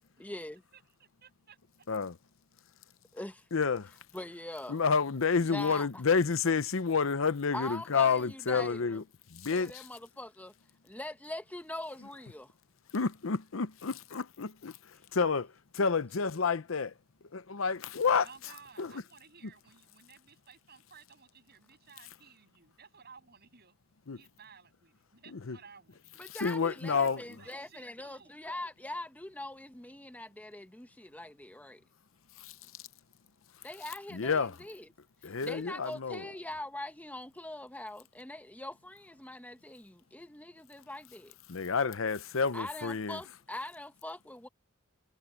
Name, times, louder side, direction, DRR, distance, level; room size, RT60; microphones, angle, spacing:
voice 1, 0.2-0.6 3.1-3.4 4.1-4.8 5.4-6.0 7.5-9.0 9.5-10.5 10.8-12.5 26.2-31.8 33.6-34.9 35.4-41.3 42.5-44.5, left 1 dB, 10° left, 1.1 m, -42 dB
voice 2, 0.7-1.9 18.2-23.7 24.1-26.3 27.0-28.3, right 6 dB, 50° right, 7.5 m, -57 dB
voice 3, 3.5-3.9 4.7-9.0 9.3-9.7 12.9-14.7 15.1-15.5 15.7-16.9 17.3-18.3 18.8-18.9 24.1-24.2 25.3-25.6 26.4-27.2 32.4-32.5 34.1-34.5 35.2-36.2 41.5-43.2, left 5 dB, 70° left, 0.8 m, -29 dB
head